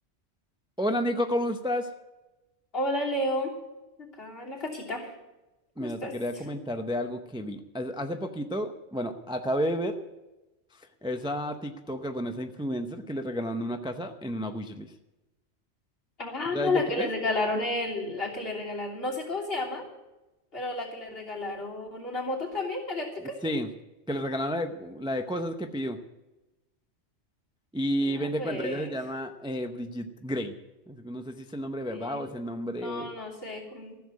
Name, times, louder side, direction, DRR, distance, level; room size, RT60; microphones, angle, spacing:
voice 1, 0.8-1.9 5.8-10.1 10.7-14.9 16.5-17.1 23.4-23.7 24.1-26.0 27.7-30.5 30.9-33.1, equal, 5° right, 6 dB, 0.6 m, -31 dB
voice 2, 2.7-3.5 4.0-5.1 5.8-6.1 16.2-19.9 20.5-23.4 28.0-29.0 31.9-32.2 32.7-34.0, left 2 dB, 55° left, -3 dB, 3.4 m, -32 dB
14.5 x 7.2 x 9.5 m, 1.0 s
omnidirectional pair, 1.2 m